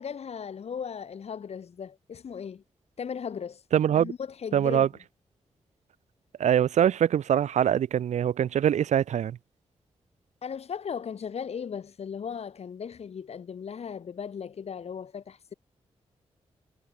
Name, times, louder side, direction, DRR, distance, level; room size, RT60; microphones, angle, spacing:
voice 1, 0.0-2.6 3.0-3.6 3.9-4.9 10.4-15.5, left 7 dB, 65° left, 6.8 m, -37 dB
voice 2, 3.7-4.1 4.5-4.9 6.4-9.4, right 9 dB, 85° right, 0.8 m, -23 dB
wide cardioid pair, 130°, 12 cm